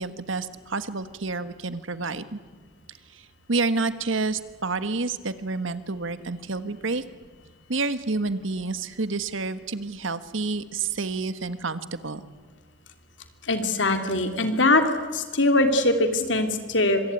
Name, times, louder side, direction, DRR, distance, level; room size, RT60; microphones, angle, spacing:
voice 1, 0.0-2.4 3.5-7.0 7.7-12.2, right 3 dB, 85° right, 12 dB, 1.5 m, -29 dB
voice 2, 13.5-14.8 15.1-17.0, left 2 dB, 70° left, 6 dB, 3.0 m, -22 dB
25.5 x 23.5 x 9.7 m, 1.4 s
head